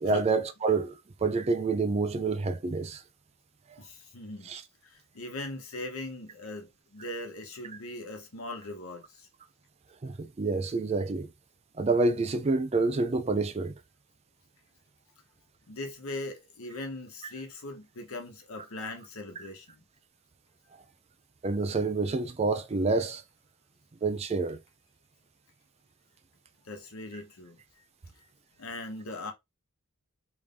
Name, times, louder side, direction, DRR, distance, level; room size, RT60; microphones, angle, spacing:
voice 1, 0.0-0.9 1.2-3.0 4.5-4.6 10.0-11.3 11.8-13.7 21.4-23.2 24.0-24.6, right 3 dB, 30° right, 0.4 m, -27 dB
voice 2, 3.8-4.5 4.8-9.3 15.7-19.8 26.6-27.6 28.6-29.3, left 2 dB, 80° left, 1.0 m, -40 dB
3.1 x 2.6 x 3.4 m
head